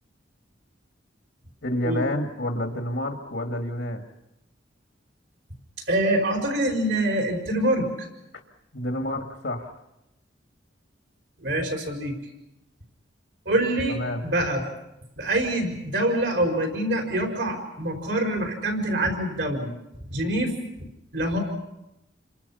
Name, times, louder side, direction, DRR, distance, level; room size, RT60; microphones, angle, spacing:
voice 1, 1.6-4.0 8.7-9.7 13.9-14.2, left 1 dB, 70° left, 3 dB, 2.2 m, -29 dB
voice 2, 5.9-8.1 11.4-12.1 13.4-14.6 15.2-19.7 20.1-20.5 21.1-21.4, right 1 dB, 65° right, 2 dB, 4.9 m, -25 dB
29.0 x 24.5 x 5.7 m, 0.91 s
head